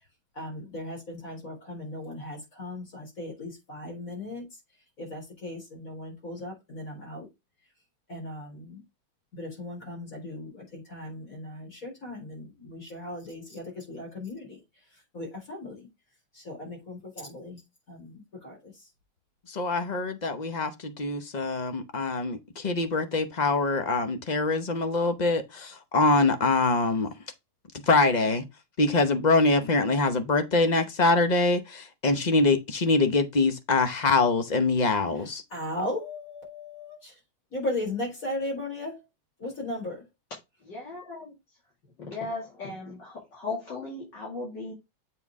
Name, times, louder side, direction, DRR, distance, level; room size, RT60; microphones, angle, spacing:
voice 1, 0.4-4.5 5.0-7.3 8.1-8.8 9.3-14.6 15.1-15.9 16.3-17.6 17.9-18.7 35.5-37.1 37.5-39.0 39.4-40.0, left 1 dB, 40° left, 4.3 m, -37 dB
voice 2, 19.5-27.1 27.9-28.4 28.8-35.4, left 3 dB, 80° left, 0.4 m, -24 dB
voice 3, 40.6-41.4 42.0-44.7, left 3 dB, 60° left, 2.8 m, -37 dB
7.8 x 4.5 x 3.6 m
omnidirectional pair, 2.2 m